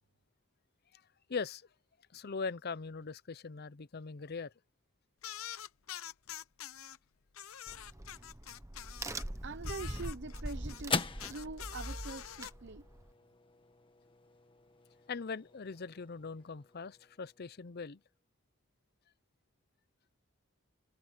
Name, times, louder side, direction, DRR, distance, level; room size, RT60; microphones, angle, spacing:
voice 1, 1.3-1.7 2.1-4.5 15.1-18.0, left 4 dB, 50° left, 0.6 m, -41 dB
sound 1, 5.2-7.0 7.3-9.3 9.6-12.5, left 11 dB, 85° left, 0.7 m, -46 dB
Crack, 7.7-13.1, right 1 dB, 15° right, 1.0 m, -43 dB
voice 2, 9.4-12.9, right 3 dB, 60° right, 0.8 m, -44 dB
sound 2, 9.6-18.2, left 4 dB, 25° left, 1.5 m, -44 dB
head